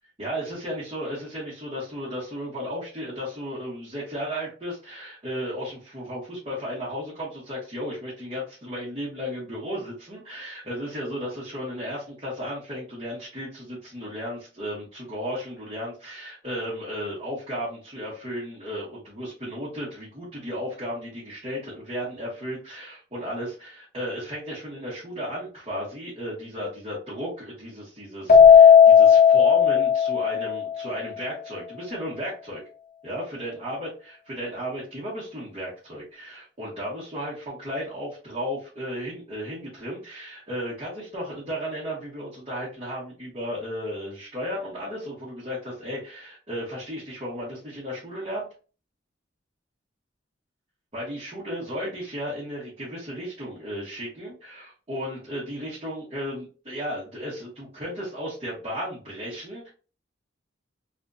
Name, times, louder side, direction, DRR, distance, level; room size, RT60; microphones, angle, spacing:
voice 1, 0.2-32.6 33.0-48.5 50.9-59.7, equal, 30° right, -9 dB, 1.6 m, -34 dB
Keyboard (musical), 28.3-30.8, left 7 dB, 45° left, 0.5 m, -14 dB
4.1 x 2.6 x 2.6 m, 0.36 s
head